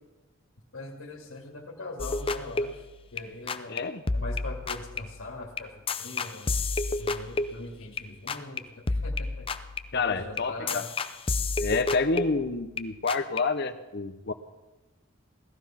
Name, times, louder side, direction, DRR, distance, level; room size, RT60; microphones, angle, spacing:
voice 1, 0.7-2.9 3.1-3.8 4.1-6.6 7.0-9.5 9.9-10.9, left 2 dB, 80° left, 1 dB, 2.2 m, -41 dB
sound 1, 2.0-3.8 4.1-8.6 8.9-12.8 13.1-13.4, left 3 dB, 25° left, 0.6 m, -31 dB
voice 2, 3.7-4.0 9.9-10.8 11.6-14.3, left 4 dB, 55° left, 8 dB, 0.9 m, -28 dB
17.5 x 14.0 x 5.8 m, 1.1 s
head